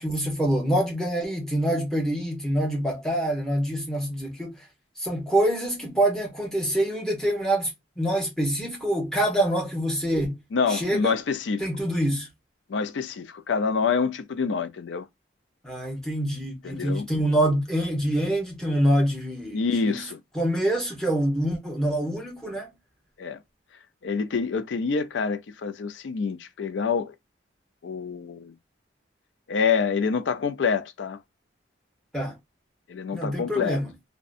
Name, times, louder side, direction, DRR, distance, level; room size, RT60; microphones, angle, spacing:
voice 1, 0.0-4.5 5.0-7.7 8.0-10.3 10.7-11.1 11.6-12.3 15.6-20.0 20.3-22.7 32.1-32.4 33.1-33.9, right 1 dB, 5° left, 0.8 m, -25 dB
voice 2, 10.5-11.7 12.7-15.1 16.6-17.1 19.5-20.2 23.2-23.4 24.0-27.1 27.8-28.5 29.5-31.2 32.9-33.8, left 5 dB, 75° left, 0.4 m, -27 dB
2.6 x 2.2 x 2.3 m
head